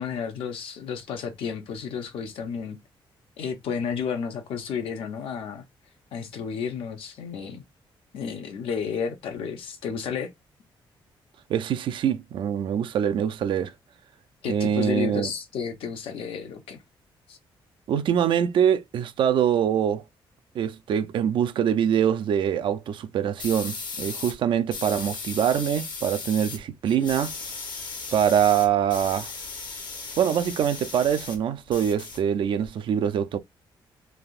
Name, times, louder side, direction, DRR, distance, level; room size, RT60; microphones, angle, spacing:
voice 1, 0.0-2.8 3.4-5.6 6.1-7.6 8.1-10.3 14.4-16.8 17.3-17.4, left 6 dB, 80° left, 0.8 m, -32 dB
voice 2, 11.5-13.7 14.5-15.3 17.9-20.0 20.5-27.3 28.1-29.3 30.2-33.4, right 9 dB, 60° right, 0.4 m, -24 dB
sound 1, 23.4-24.4 24.7-26.6 26.9-31.4 31.7-32.7, left 4 dB, 55° left, 0.9 m, -36 dB
3.3 x 2.7 x 2.4 m
cardioid pair, 145°, 9 cm